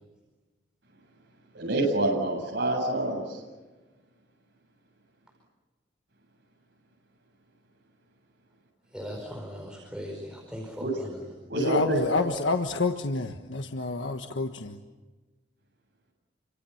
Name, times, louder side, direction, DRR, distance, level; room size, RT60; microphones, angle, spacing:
voice 1, 1.5-3.4 10.8-10.9 11.5-12.3, right 1 dB, 70° right, -2 dB, 7.9 m, -27 dB
voice 2, 8.9-11.3, equal, 5° right, 0 dB, 4.9 m, -39 dB
voice 3, 11.6-14.8, left 3 dB, 85° left, 5 dB, 1.5 m, -28 dB
30.0 x 25.5 x 7.3 m, 1.2 s
head